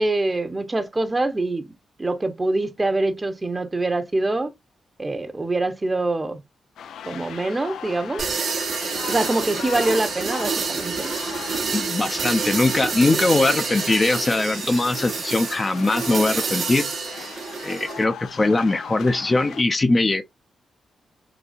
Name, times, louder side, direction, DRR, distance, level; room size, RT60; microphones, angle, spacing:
voice 1, 0.0-1.7 2.0-4.5 5.0-6.4 7.0-8.2 9.1-11.1 13.1-13.2, right 2 dB, 25° right, 0.8 m, -24 dB
sound 1, 6.8-19.6, left 8 dB, 80° left, 0.3 m, -38 dB
sound 2, 8.2-18.0, right 5 dB, 65° right, 1.0 m, -28 dB
voice 2, 11.7-16.9 17.6-20.2, left 2 dB, 30° left, 0.5 m, -21 dB
3.9 x 2.7 x 2.4 m
cardioid pair, 70°, 0 cm